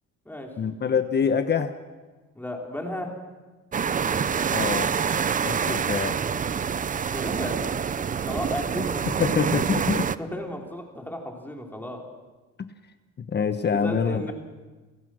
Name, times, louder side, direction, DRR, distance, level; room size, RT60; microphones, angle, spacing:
voice 1, 0.6-1.8 4.5-4.9 5.4-6.2 8.7-10.1 13.2-14.3, left 6 dB, 35° left, 9 dB, 1.1 m, -26 dB
voice 2, 2.4-3.1 5.6-5.8 7.1-7.6 8.1-9.1 9.9-12.0 13.7-14.3, left 1 dB, 5° left, 1 dB, 3.8 m, -34 dB
sound 1, 3.7-10.2, right 7 dB, 30° right, 0.6 m, -26 dB
28.0 x 16.0 x 6.3 m, 1.3 s
cardioid pair, 110°, 29 cm